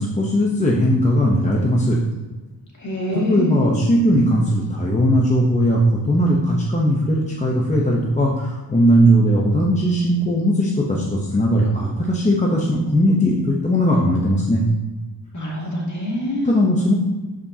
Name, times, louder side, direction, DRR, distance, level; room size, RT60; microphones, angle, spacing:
voice 1, 0.0-2.0 3.1-14.6 16.4-16.9, equal, 15° left, -2 dB, 0.8 m, -18 dB
voice 2, 2.8-3.8 15.3-16.5, equal, 40° left, -4 dB, 2.5 m, -25 dB
12.5 x 5.2 x 2.8 m, 1.2 s
wide cardioid pair, 155°, 43 cm